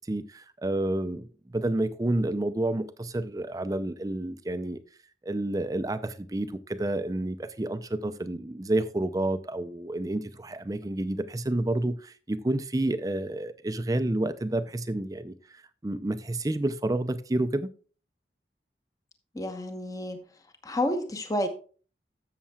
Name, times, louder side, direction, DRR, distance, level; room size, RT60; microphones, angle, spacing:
voice 1, 0.1-4.8 5.2-17.7, right 1 dB, 20° right, 0.5 m, -29 dB
voice 2, 19.3-20.2 20.6-21.5, left 1 dB, 20° left, 0.9 m, -30 dB
13.0 x 7.5 x 2.3 m
head